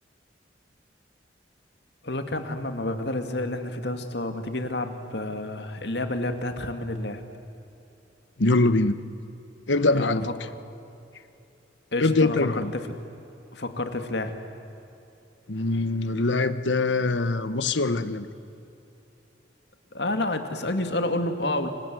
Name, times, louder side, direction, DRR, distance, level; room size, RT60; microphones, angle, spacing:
voice 1, 2.0-7.2 9.9-10.3 11.9-12.9 13.5-14.3 19.9-21.7, left 2 dB, 65° left, 7 dB, 2.4 m, -29 dB
voice 2, 8.4-9.0 9.7-10.3 12.0-12.7 15.5-18.3, left 2 dB, 85° left, 13 dB, 1.2 m, -23 dB
29.0 x 25.5 x 7.8 m, 2.9 s
head